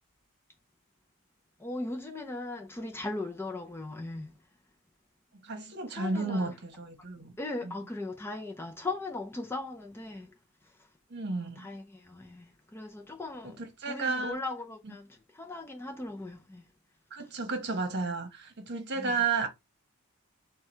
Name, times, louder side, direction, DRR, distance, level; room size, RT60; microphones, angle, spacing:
voice 1, 1.6-4.3 6.0-6.5 7.4-10.3 10.6-10.7 11.4-13.6 13.9-16.7 19.0-19.2, left 2 dB, 10° left, 0.5 m, -38 dB
voice 2, 5.4-7.3 7.6-7.8 11.1-11.7 13.4-14.4 17.1-19.5, right 4 dB, 50° right, 1.1 m, -32 dB
4.6 x 2.2 x 4.4 m
head